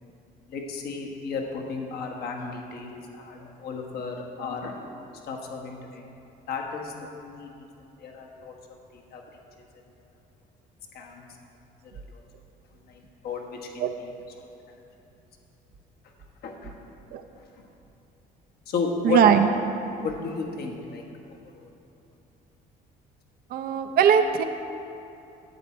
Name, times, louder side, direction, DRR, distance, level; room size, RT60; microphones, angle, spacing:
voice 1, 0.5-4.9 5.3-6.0 6.5-7.5 7.8-8.5 8.9-9.2 10.9-11.2 11.9-12.2 12.9-13.4 13.7-14.1 16.4-16.7 17.4-17.5 18.7-19.2 20.0-21.0 21.6-21.7, left 5 dB, 70° left, 1 dB, 1.5 m, -34 dB
voice 2, 19.0-19.5 23.5-24.4, right 8 dB, 65° right, 7 dB, 0.6 m, -20 dB
11.0 x 8.5 x 4.5 m, 2.8 s
cardioid pair, 110°, 17 cm